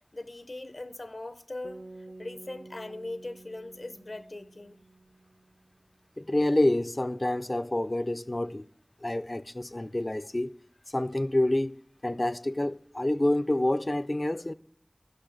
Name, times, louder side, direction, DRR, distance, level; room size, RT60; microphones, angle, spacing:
voice 1, 0.1-1.8 2.2-4.8, left 2 dB, 85° left, 0.6 m, -40 dB
sound 1, 1.6-5.9, right 2 dB, 65° right, 0.7 m, -49 dB
voice 2, 6.2-8.7 9.0-10.6 10.9-11.8 12.0-14.5, left 1 dB, 45° left, 0.4 m, -27 dB
14.5 x 6.2 x 3.9 m
wide cardioid pair, 45°, 0 cm